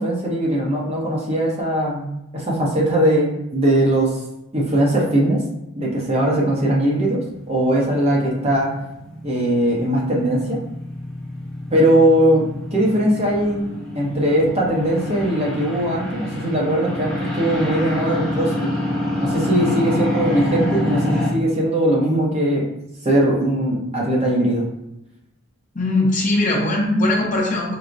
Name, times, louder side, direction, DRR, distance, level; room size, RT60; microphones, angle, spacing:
voice 1, 0.0-4.2 4.5-5.4 5.8-8.8 9.2-10.6 11.7-13.7 13.9-18.7 19.2-22.7 23.0-24.7, right 1 dB, 30° right, -3 dB, 0.7 m, -20 dB
sound 1, 6.8-21.3, left 1 dB, 5° left, 0.9 m, -27 dB
voice 2, 25.7-27.8, left 2 dB, 35° left, -2 dB, 0.6 m, -20 dB
4.5 x 2.0 x 2.5 m, 0.87 s
head